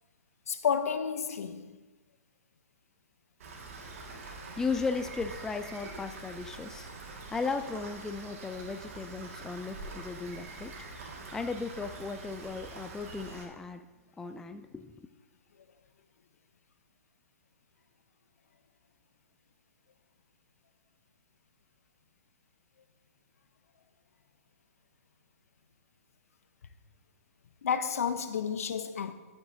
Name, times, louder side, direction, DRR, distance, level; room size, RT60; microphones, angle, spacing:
voice 1, 0.5-1.8 27.6-29.1, left 7 dB, 70° left, 0.7 m, -31 dB
Rain, 3.4-13.5, right 3 dB, 60° right, 1.9 m, -45 dB
voice 2, 4.6-6.9 7.3-10.7 11.3-13.9 14.2-15.1, left 4 dB, 5° left, 0.3 m, -36 dB
11.5 x 8.0 x 2.7 m
hypercardioid pair, 130°, 8 cm